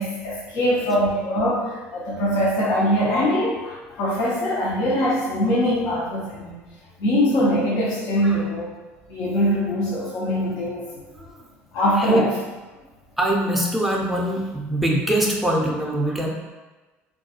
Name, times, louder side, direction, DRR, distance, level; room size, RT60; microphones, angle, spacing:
voice 1, 0.0-6.6 7.0-8.7 9.1-10.8 11.7-12.3, equal, 65° left, -6 dB, 0.6 m, -22 dB
voice 2, 12.0-12.3 12.7-12.8 13.2-16.3, right 1 dB, ahead, -1 dB, 0.6 m, -23 dB
2.3 x 2.2 x 2.8 m, 1.2 s
hypercardioid pair, 70°, 7 cm